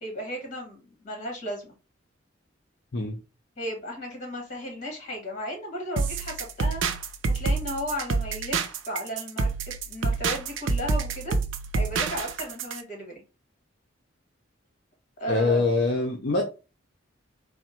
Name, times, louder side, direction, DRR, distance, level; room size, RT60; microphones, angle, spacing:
voice 1, 0.0-1.7 3.6-6.8 7.3-9.5 9.9-11.3 11.7-13.2 15.2-15.7, equal, 40° left, 2 dB, 1.6 m, -35 dB
sound 1, 6.0-12.8, right 4 dB, 75° right, 0.5 m, -28 dB
voice 2, 15.3-16.4, left 3 dB, 55° left, 1 dB, 0.6 m, -24 dB
3.5 x 2.1 x 4.3 m, 0.31 s
head